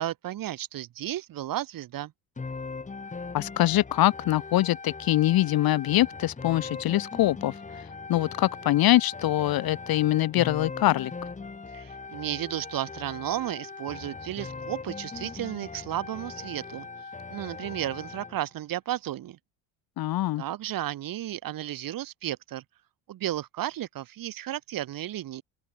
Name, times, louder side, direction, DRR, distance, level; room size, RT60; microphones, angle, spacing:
voice 1, 0.0-2.1 11.7-19.4 20.4-22.6 23.1-25.4, right 13 dB, 55° right, 2.2 m, -33 dB
sound 1, 2.4-18.4, left 4 dB, 20° left, 2.8 m, -40 dB
voice 2, 3.3-11.1 20.0-20.4, left 15 dB, 60° left, 1.8 m, -24 dB
open air
cardioid pair, 120°, 41 cm